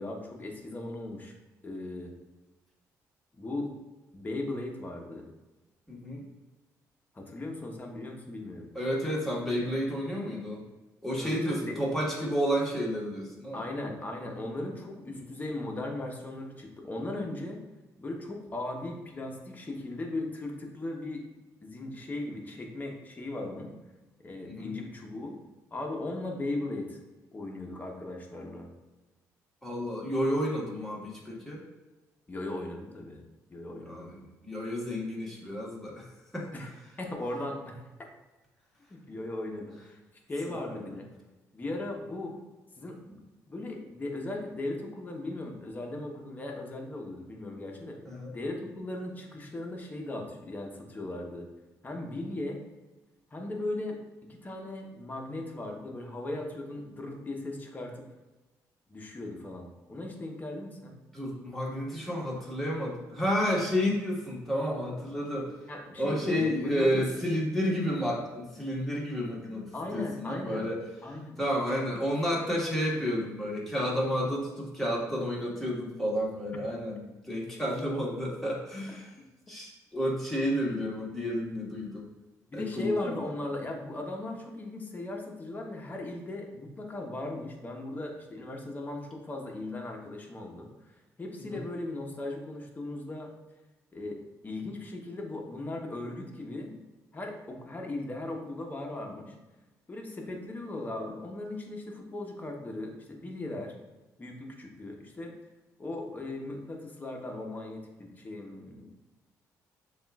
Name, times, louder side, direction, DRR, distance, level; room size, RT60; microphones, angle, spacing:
voice 1, 0.0-1.3 1.6-2.1 3.3-3.7 4.1-5.3 7.1-8.7 11.2-11.8 13.5-17.6 18.0-21.3 21.6-23.8 24.2-25.4 25.7-27.0 27.3-28.7 32.3-33.2 33.5-34.1 36.5-37.8 38.9-40.0 40.3-41.1 41.5-42.3 42.8-43.2 43.5-48.0 48.3-51.5 51.8-52.6 53.3-54.0 54.3-58.0 58.9-61.0 65.7-67.1 69.7-70.7 71.0-71.4 82.5-93.3 93.9-96.8 97.1-99.3 99.9-103.7 104.2-105.3 105.8-108.9, left 2 dB, 25° left, 1 dB, 0.9 m, -37 dB
voice 2, 5.9-6.2 8.7-10.6 11.0-13.6 15.1-15.2 24.5-24.7 29.6-31.6 33.9-34.1 34.4-36.1 36.3-36.5 40.6-40.8 48.0-48.3 61.1-65.5 66.0-70.8 71.4-79.2 79.5-82.1 82.5-83.2 91.5-91.6, equal, 5° left, -4 dB, 1.5 m, -31 dB
7.0 x 2.4 x 2.3 m, 1.1 s
cardioid pair, 85°, 6 cm